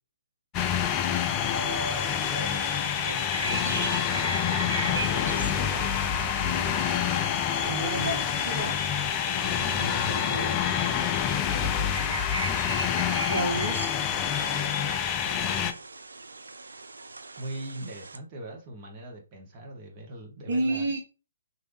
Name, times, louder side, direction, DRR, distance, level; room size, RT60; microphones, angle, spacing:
sound 1, 0.5-15.7, left 9 dB, 25° left, 0.4 m, -27 dB
sound 2, 1.5-18.2, right 3 dB, 70° right, 0.4 m, -38 dB
voice 1, 3.4-6.8 9.5-10.8 11.3-11.9 15.2-15.7 17.4-21.0, right 1 dB, 30° right, 1.0 m, -41 dB
voice 2, 7.6-8.8 13.3-13.9 20.5-21.0, right 2 dB, 55° right, 0.7 m, -30 dB
3.2 x 2.6 x 3.1 m
figure-of-eight pair, 130°, 0 cm